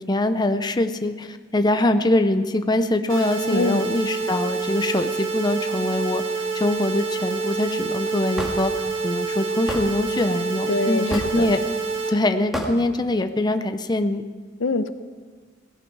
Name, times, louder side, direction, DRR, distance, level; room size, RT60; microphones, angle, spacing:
voice 1, 0.0-11.6 12.1-14.3, left 1 dB, 20° left, 8 dB, 0.6 m, -23 dB
sound 1, 3.1-12.1, right 4 dB, 75° right, 2.0 m, -27 dB
voice 2, 3.5-4.0 10.7-11.5 14.6-14.9, left 2 dB, 85° left, 11 dB, 0.8 m, -24 dB
Hammer / Wood, 8.4-8.6 9.7-9.9 11.1-11.4 12.5-12.7, equal, ahead, 1.9 m, -27 dB
17.5 x 16.5 x 4.8 m, 1.5 s
head